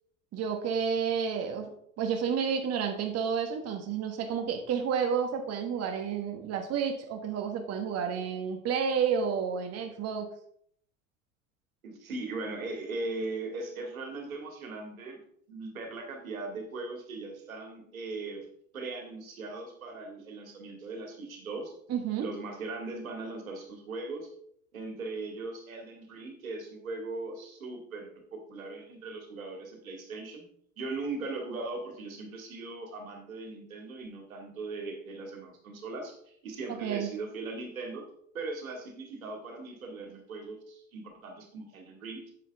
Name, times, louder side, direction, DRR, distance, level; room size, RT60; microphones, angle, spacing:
voice 1, 0.3-1.7 2.0-10.3 21.9-22.3 36.8-37.1, right 7 dB, 35° right, 4 dB, 1.4 m, -30 dB
voice 2, 11.8-15.2 15.5-18.5 18.7-21.7 22.2-24.3 24.7-30.5 30.8-38.0 38.3-42.3, right 3 dB, 80° right, 3 dB, 2.3 m, -39 dB
9.1 x 8.0 x 3.5 m, 0.67 s
figure-of-eight pair, 80°, 41 cm